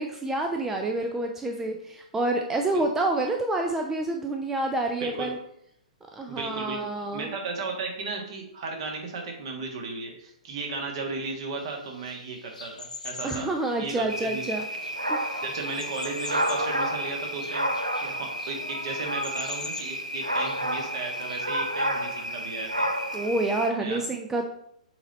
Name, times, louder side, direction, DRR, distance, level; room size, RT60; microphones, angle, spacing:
voice 1, 0.0-5.4 6.1-7.3 13.2-14.7 15.1-15.4 23.1-24.4, right 2 dB, 10° right, 3 dB, 0.5 m, -28 dB
voice 2, 6.3-13.5 13.8-14.4 15.4-22.9 23.8-24.1, right 3 dB, 45° right, 2 dB, 1.6 m, -35 dB
sound 1, 11.6-21.4, left 4 dB, 75° left, 0.8 m, -44 dB
sound 2, 14.1-23.7, equal, 85° right, 0.9 m, -30 dB
6.8 x 4.0 x 4.1 m, 0.74 s
figure-of-eight pair, 115°, 4 cm